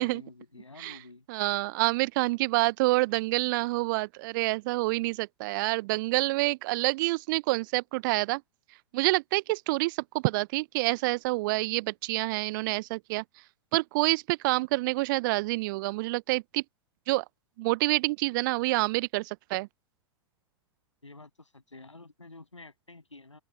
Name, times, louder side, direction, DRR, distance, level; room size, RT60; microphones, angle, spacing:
voice 1, 0.0-1.2 21.0-23.4, left 2 dB, 80° left, 7.6 m, -49 dB
voice 2, 1.3-8.4 8.9-13.2 13.7-16.6 17.1-17.2 17.6-19.7, right 22 dB, 45° right, 0.8 m, -27 dB
open air
figure-of-eight pair, 95°, 15 cm